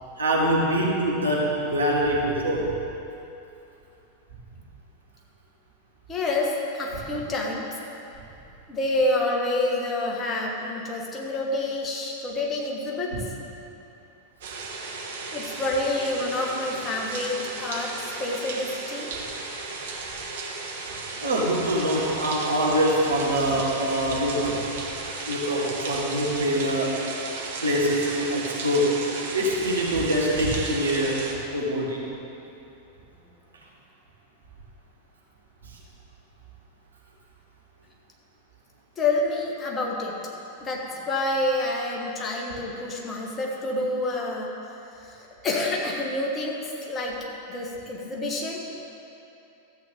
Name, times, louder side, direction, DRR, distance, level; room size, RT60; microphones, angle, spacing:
voice 1, 0.2-2.7 13.1-13.2 21.2-24.7 25.3-27.0 27.6-29.0 29.3-31.3 31.5-32.1, equal, 75° right, -3 dB, 1.6 m, -24 dB
voice 2, 6.1-7.6 8.7-13.1 15.3-19.1 39.0-40.1 40.6-44.5 45.0-47.2 47.5-48.6, left 2 dB, 20° left, -2 dB, 1.6 m, -28 dB
sound 1, 14.4-31.3, right 3 dB, 55° right, 1.3 m, -35 dB
13.0 x 8.3 x 3.7 m, 2.8 s
figure-of-eight pair, 90°, 0 cm